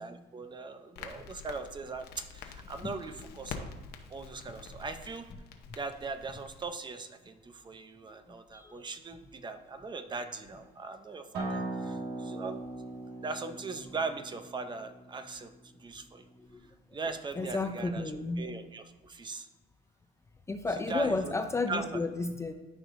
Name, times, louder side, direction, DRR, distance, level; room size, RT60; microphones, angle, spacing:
voice 1, 0.0-3.7 4.1-5.3 5.7-12.7 13.2-15.5 15.8-16.3 16.9-18.1 18.4-19.5 20.7-21.3 21.7-22.0, right 3 dB, 25° right, 9 dB, 0.6 m, -40 dB
Crackle, 1.0-6.7, left 5 dB, 75° left, 0.9 m, -46 dB
Acoustic guitar, 11.3-16.5, right 2 dB, 70° right, 1.6 m, -40 dB
voice 2, 17.4-18.5 20.5-22.5, left 3 dB, 15° left, 7 dB, 0.4 m, -32 dB
13.0 x 4.9 x 2.6 m, 1.2 s
cardioid pair, 110°, 17 cm